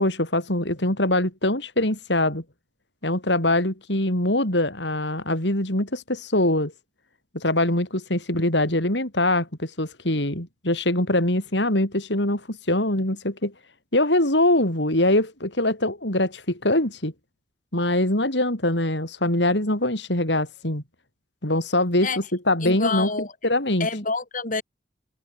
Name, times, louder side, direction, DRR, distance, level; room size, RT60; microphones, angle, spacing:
voice 1, 0.0-2.4 3.0-6.7 7.3-13.5 13.9-17.1 17.7-20.8 21.4-23.1 23.4-23.9, left 1 dB, 75° left, 7.3 m, -23 dB
voice 2, 22.6-23.3 23.8-24.6, left 3 dB, 45° left, 7.5 m, -27 dB
head